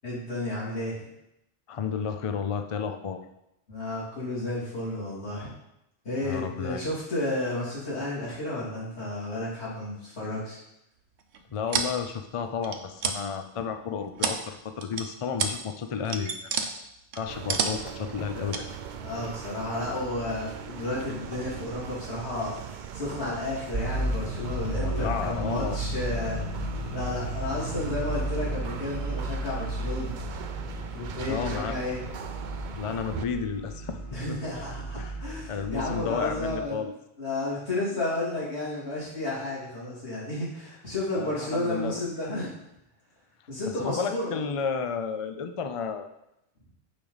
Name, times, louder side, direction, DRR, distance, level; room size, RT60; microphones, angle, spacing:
voice 1, 0.0-1.0 3.7-5.5 6.0-10.6 19.0-26.4 26.9-30.2 30.9-32.0 34.1-36.8 37.2-42.5 43.5-44.5, left 2 dB, 85° left, -8 dB, 3.4 m, -32 dB
voice 2, 1.7-3.2 6.2-6.8 11.5-16.4 17.1-18.6 24.7-25.8 31.3-31.8 32.8-34.0 34.3-34.4 35.0-35.2 35.5-36.9 41.1-42.0 43.8-46.1, left 6 dB, 40° left, 7 dB, 0.5 m, -32 dB
sound 1, 11.3-11.9 12.6-13.2 13.7-14.5 14.8-15.0 15.4-15.5 15.9-16.7 17.1-17.9 18.5-18.6, right 5 dB, 90° right, 1.1 m, -28 dB
sound 2, 17.3-33.3, right 8 dB, 55° right, 0.6 m, -40 dB
sound 3, 23.7-36.6, right 1 dB, 35° right, 1.2 m, -34 dB
8.9 x 5.2 x 4.0 m, 0.84 s
omnidirectional pair, 1.1 m